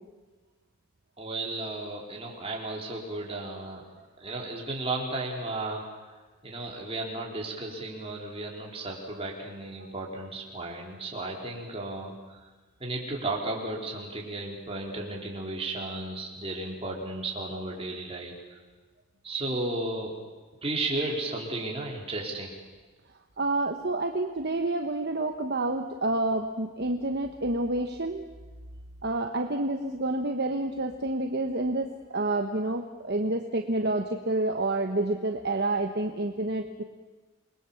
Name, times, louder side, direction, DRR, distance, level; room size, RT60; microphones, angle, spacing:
voice 1, 1.2-5.8 6.4-12.4 12.8-18.6 19.2-20.1 20.6-22.5, right 2 dB, 25° right, -1 dB, 4.0 m, -34 dB
voice 2, 23.4-28.2 29.0-36.8, right 2 dB, 45° right, 4 dB, 1.2 m, -28 dB
28.0 x 20.5 x 7.2 m, 1.3 s
head